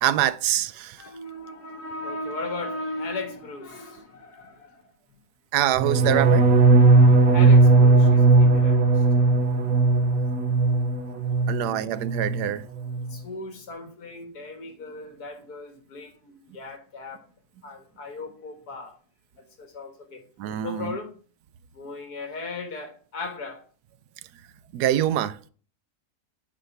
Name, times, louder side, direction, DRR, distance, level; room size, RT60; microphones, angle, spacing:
voice 1, 0.0-1.0 5.5-6.5 11.5-12.6 20.4-21.0 24.7-25.4, right 12 dB, 90° right, 1.1 m, -24 dB
voice 2, 1.0-4.9 7.3-9.1 13.1-17.2 17.6-19.0 19.3-20.2 20.6-21.1 21.7-23.6, left 2 dB, 75° left, 2.0 m, -37 dB
sound 1, 5.7-11.7 12.0-12.5 12.8-13.1, right 3 dB, 65° right, 1.2 m, -18 dB
8.8 x 3.2 x 5.5 m
omnidirectional pair, 1.7 m